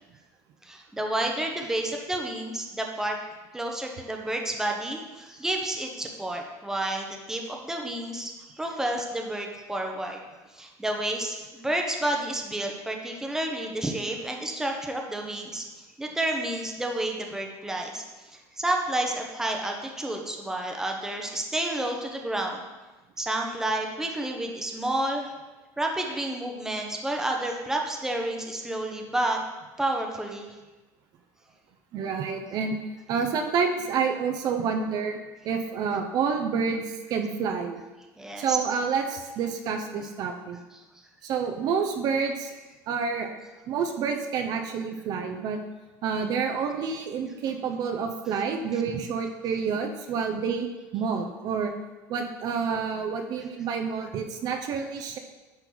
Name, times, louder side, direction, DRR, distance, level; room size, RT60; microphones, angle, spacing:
voice 1, 0.6-3.2 3.5-10.2 10.5-15.6 16.0-18.0 18.6-22.6 23.2-25.3 25.8-29.4 29.8-30.5 38.2-38.6 40.7-40.8, right 1 dB, 5° right, 1 dB, 1.0 m, -30 dB
voice 2, 31.9-32.8 33.1-35.2 35.4-37.8 38.4-40.6 41.2-42.5 42.9-43.3 43.7-45.6 46.0-50.7 50.9-51.7 52.1-55.2, right 6 dB, 50° right, 4 dB, 0.8 m, -28 dB
10.5 x 4.4 x 4.0 m, 1.2 s
supercardioid pair, 125°, 8 cm